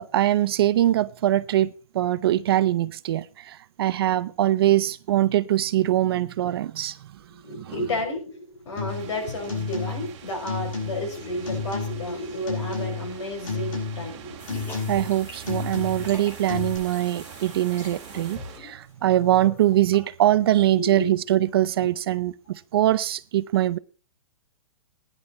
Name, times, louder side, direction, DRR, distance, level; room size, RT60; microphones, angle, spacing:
voice 1, 0.0-7.0 7.5-7.8 14.9-23.8, right 13 dB, 45° right, 0.5 m, -23 dB
voice 2, 7.4-14.4 20.7-21.1, left 1 dB, 60° left, 5.3 m, -32 dB
sound 1, 8.8-9.1 9.4-10.1 10.4-11.1 11.5-12.1 12.5-13.2 13.5-14.1 14.5-15.1 15.4-16.1 16.5-16.8, left 4 dB, 85° left, 5.7 m, -31 dB
sound 2, 8.9-18.6, right 9 dB, 30° right, 2.3 m, -44 dB
sound 3, 14.4-20.2, left 2 dB, 15° left, 1.9 m, -44 dB
13.0 x 10.5 x 4.1 m
hypercardioid pair, 170°, 17 cm